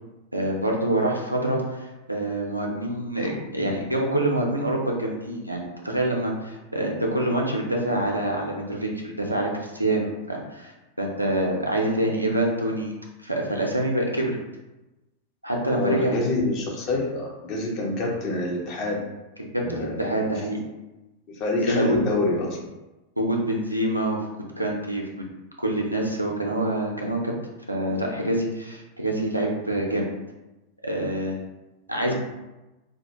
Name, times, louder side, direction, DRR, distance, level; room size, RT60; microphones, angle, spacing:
voice 1, 0.3-12.9 13.2-14.4 15.4-16.2 19.4-20.6 21.6-22.0 23.2-24.3 24.6-25.3 25.6-27.3 27.7-30.1 30.8-31.4 31.9-32.1, right 1 dB, 90° right, -1 dB, 0.4 m, -26 dB
voice 2, 3.2-3.7 15.7-19.0 19.6-20.0 21.3-22.6 32.1-32.2, left 2 dB, 40° left, -1 dB, 0.6 m, -27 dB
2.2 x 2.1 x 2.9 m, 1.0 s
figure-of-eight pair, 90°, 0 cm